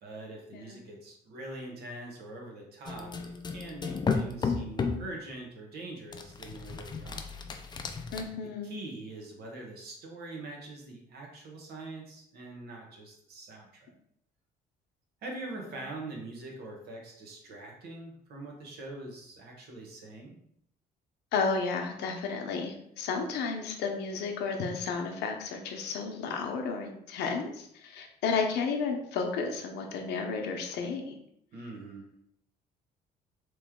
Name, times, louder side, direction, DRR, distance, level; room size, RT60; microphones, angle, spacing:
voice 1, 0.0-7.3 8.6-13.9 15.2-20.4 31.5-32.1, right 2 dB, 70° right, 0 dB, 1.2 m, -43 dB
sound 1, 2.9-5.1 6.1-8.2, left 4 dB, 25° left, 0.4 m, -33 dB
voice 2, 8.1-8.7 21.3-31.2, left 5 dB, 80° left, 4 dB, 0.7 m, -32 dB
3.2 x 3.0 x 3.6 m, 0.72 s
cardioid pair, 110°, 17 cm